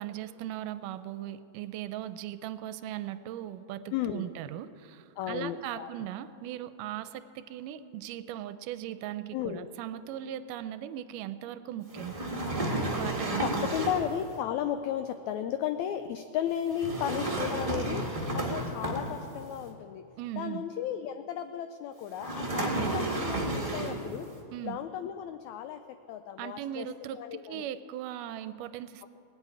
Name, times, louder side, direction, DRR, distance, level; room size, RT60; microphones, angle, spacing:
voice 1, 0.0-12.1 13.0-13.9 20.2-20.6 24.5-24.8 26.4-29.1, right 12 dB, 80° right, 13 dB, 2.1 m, -38 dB
voice 2, 3.9-4.3 5.2-5.9 9.3-9.7 13.4-18.0 18.3-20.0 20.4-24.3 24.6-26.9 27.1-27.6, left 10 dB, 85° left, 9 dB, 1.6 m, -34 dB
sound 1, 11.9-14.2 16.7-19.4 22.2-24.1, right 2 dB, 25° right, 0.7 m, -32 dB
18.5 x 8.2 x 9.3 m, 2.8 s
omnidirectional pair, 3.8 m